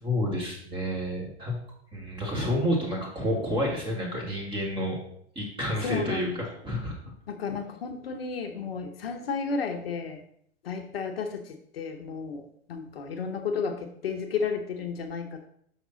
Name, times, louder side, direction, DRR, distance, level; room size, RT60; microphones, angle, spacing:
voice 1, 0.0-1.6 1.9-5.0 5.4-7.0, equal, 15° right, -2 dB, 2.0 m, -29 dB
voice 2, 5.8-6.3 7.3-10.2 10.6-15.5, left 5 dB, 60° left, 6 dB, 0.8 m, -33 dB
6.0 x 5.9 x 4.0 m, 0.68 s
figure-of-eight pair, 110°, 34 cm